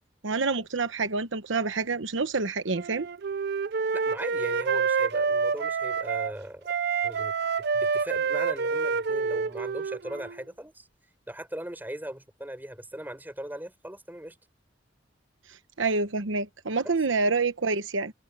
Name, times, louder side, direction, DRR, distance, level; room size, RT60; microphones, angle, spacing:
voice 1, 0.2-3.1 15.8-18.1, right 4 dB, 80° right, 1.0 m, -27 dB
Wind instrument woodwind instrument, 2.7-6.3 6.7-10.4, right 5 dB, 60° right, 0.6 m, -28 dB
voice 2, 3.9-6.7 7.0-7.3 7.7-10.9 11.3-14.4, right 1 dB, 10° right, 5.5 m, -39 dB
head